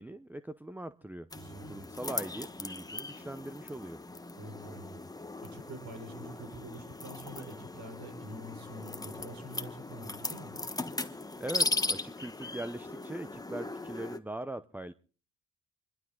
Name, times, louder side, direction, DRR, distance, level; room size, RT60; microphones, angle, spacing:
voice 1, 0.0-1.3 1.6-4.0 11.4-14.9, right 1 dB, 5° right, 0.7 m, -41 dB
sound 1, 1.3-14.2, left 2 dB, 10° left, 1.2 m, -38 dB
voice 2, 1.3-1.9 4.4-10.6, right 1 dB, 65° right, 5.7 m, -46 dB
26.5 x 12.0 x 3.8 m
cardioid pair, 90°, 30 cm